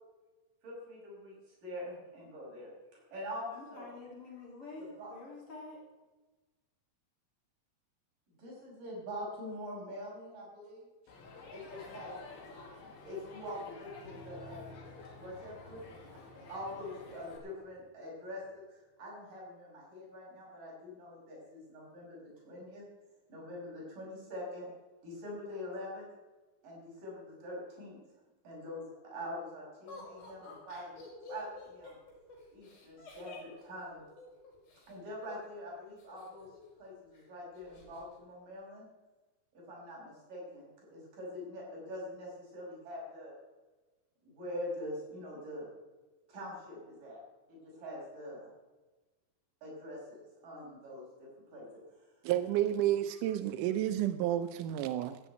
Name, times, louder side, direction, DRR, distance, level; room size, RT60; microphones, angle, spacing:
voice 1, 0.6-3.9 4.8-5.1 8.3-10.9 11.5-12.1 12.8-14.8 15.1-15.9 16.1-16.2 16.5-22.8 23.3-24.7 25.0-26.1 26.6-28.0 28.4-31.0 31.3-32.0 32.5-34.0 34.9-36.5 36.8-38.9 39.5-43.3 44.2-45.7 46.3-47.2 47.5-48.5 49.6-51.7, left 1 dB, 60° right, -4 dB, 7.2 m, -44 dB
voice 2, 3.5-5.8, left 3 dB, 35° left, -3 dB, 4.1 m, -48 dB
Crowd, 11.1-17.4, left 3 dB, 90° left, 4.7 m, -51 dB
sound 1, 14.0-18.5, left 2 dB, 20° left, 3.6 m, -55 dB
Laughter, 29.9-34.9 36.0-36.8 37.1-37.2 37.6-38.0, left 3 dB, 70° left, 6.4 m, -50 dB
voice 3, 52.2-55.2, right 12 dB, 85° right, 11 dB, 1.8 m, -31 dB
14.5 x 7.7 x 9.1 m, 1.2 s
omnidirectional pair, 4.4 m